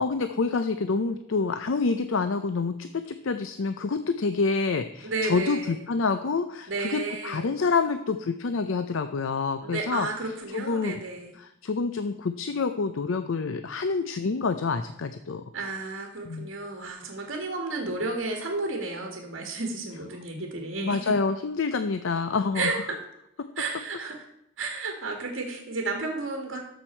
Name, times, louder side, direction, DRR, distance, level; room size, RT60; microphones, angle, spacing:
voice 1, 0.0-10.1 10.5-11.0 11.4-15.4 16.2-16.5 20.8-22.7, left 4 dB, 80° left, 10 dB, 0.5 m, -27 dB
voice 2, 5.0-5.8 6.7-7.5 9.6-11.4 15.5-21.1 22.5-23.0 23.6-24.3 24.6-26.6, right 3 dB, 65° right, 1 dB, 1.8 m, -32 dB
13.5 x 6.3 x 4.4 m, 0.80 s
head